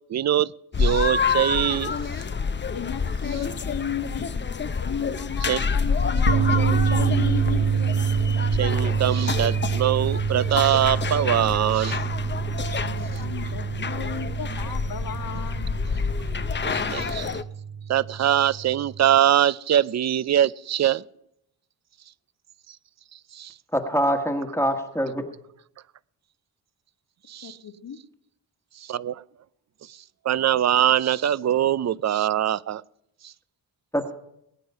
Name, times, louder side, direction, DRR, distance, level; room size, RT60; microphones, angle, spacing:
voice 1, 0.1-0.5 0.8-2.2 5.5-5.6 8.6-12.0 16.6-17.3 17.9-21.0 22.7-22.8 23.3-23.5 27.3-27.6 28.8-29.2 29.8-30.0 30.2-32.8 33.2-33.3, right 10 dB, 45° right, 21 dB, 0.5 m, -23 dB
sound 1, 0.7-17.4, left 5 dB, 30° left, 0.7 m, -28 dB
voice 2, 2.7-4.3 4.8-7.6 12.7-15.8 27.4-28.0, left 7 dB, 60° left, 8 dB, 1.6 m, -34 dB
sound 2, 6.3-19.2, right 7 dB, 75° right, 0.9 m, -27 dB
voice 3, 23.7-25.3 33.9-34.1, equal, 5° left, 3 dB, 1.3 m, -24 dB
20.5 x 9.3 x 5.5 m, 0.77 s
cardioid pair, 85°, 40 cm